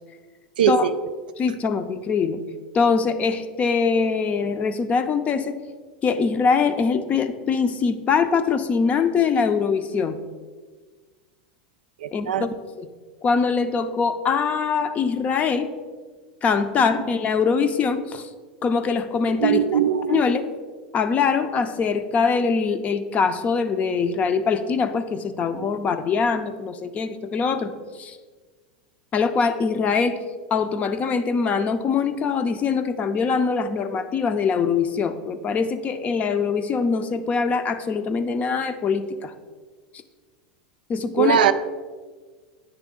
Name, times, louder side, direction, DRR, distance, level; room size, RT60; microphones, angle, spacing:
voice 1, 0.6-0.9 12.0-12.5 19.4-20.2 41.2-41.5, right 9 dB, 85° right, 11 dB, 0.4 m, -20 dB
voice 2, 1.4-2.4 2.7-5.6 6.0-10.2 12.1-12.9 13.2-15.7 16.4-18.3 18.6-19.8 20.1-20.4 20.9-27.7 28.0-28.2 29.1-30.2 30.5-39.3 40.9-41.4, left 5 dB, 30° left, 10 dB, 0.5 m, -23 dB
9.1 x 3.3 x 3.7 m, 1.4 s
hypercardioid pair, 105°, 5 cm